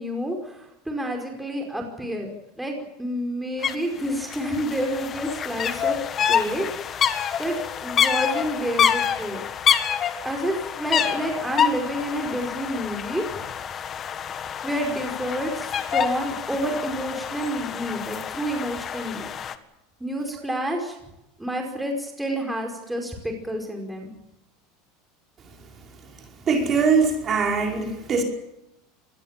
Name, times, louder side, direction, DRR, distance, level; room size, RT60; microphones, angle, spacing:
voice 1, 0.0-2.3 2.6-6.0 6.3-6.7 7.4-9.4 10.2-13.5 14.6-19.3 20.0-21.0 21.4-24.1, equal, 5° right, 5.1 m, -29 dB
sound 1, 3.6-3.7 4.0-19.5, left 8 dB, 30° left, 1.7 m, -27 dB
voice 2, 26.5-28.2, right 5 dB, 30° right, 5.3 m, -22 dB
26.0 x 20.5 x 7.6 m
supercardioid pair, 145°, 0 cm